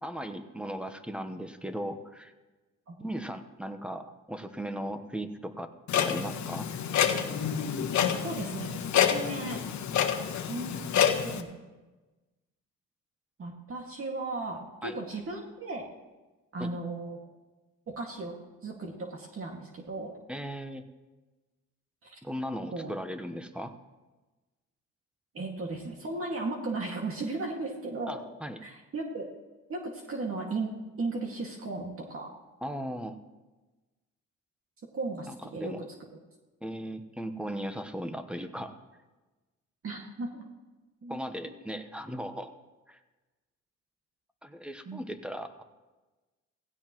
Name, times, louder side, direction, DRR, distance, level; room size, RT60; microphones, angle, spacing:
voice 1, 0.0-2.3 3.0-6.7 14.8-15.0 16.6-16.7 20.3-20.8 22.2-23.7 28.1-28.6 32.6-33.2 35.3-35.9 36.6-38.7 41.1-42.5 42.9-43.0 44.4-45.6, equal, 5° right, 8 dB, 1.1 m, -37 dB
Clock, 5.9-11.4, left 8 dB, 70° left, 1.2 m, -28 dB
voice 2, 8.2-9.6 10.5-10.9 11.2-11.5 13.4-15.8 16.5-17.2 17.9-18.3 18.6-20.1 22.0-22.2 22.7-22.9 25.3-28.2 28.6-29.3 29.7-32.3 34.9-35.7 39.8-40.5 41.0-41.5 44.9-45.0, right 3 dB, 45° right, 0 dB, 2.1 m, -36 dB
17.0 x 16.0 x 3.1 m, 1.2 s
cardioid pair, 90°, 30 cm